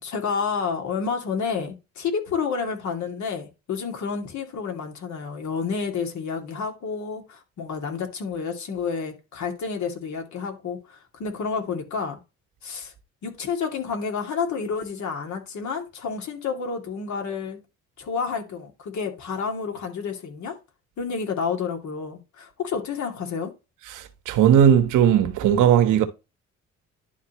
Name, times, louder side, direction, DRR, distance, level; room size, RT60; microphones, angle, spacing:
voice 1, 0.0-12.2 12.6-12.9 13.2-17.6 18.0-20.5 21.0-23.5, left 5 dB, 70° left, 2.6 m, -30 dB
voice 2, 23.8-26.0, right 9 dB, 90° right, 1.3 m, -18 dB
11.5 x 4.1 x 3.1 m
cardioid pair, 90°, 30 cm